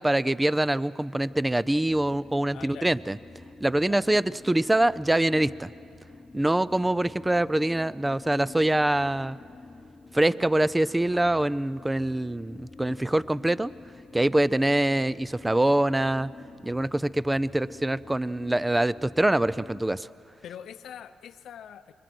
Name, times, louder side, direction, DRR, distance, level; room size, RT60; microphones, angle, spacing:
voice 1, 0.0-3.2 3.6-5.7 6.3-9.4 10.1-13.7 14.1-16.3 16.6-20.1, right 1 dB, 10° right, 19 dB, 0.4 m, -24 dB
sound 1, 1.3-20.0, left 3 dB, 20° left, 1.0 m, -48 dB
voice 2, 2.5-2.9 3.8-4.0 20.4-21.9, left 9 dB, 70° left, 10 dB, 0.7 m, -43 dB
26.5 x 22.5 x 6.1 m, 2.7 s
cardioid pair, 90°, 0 cm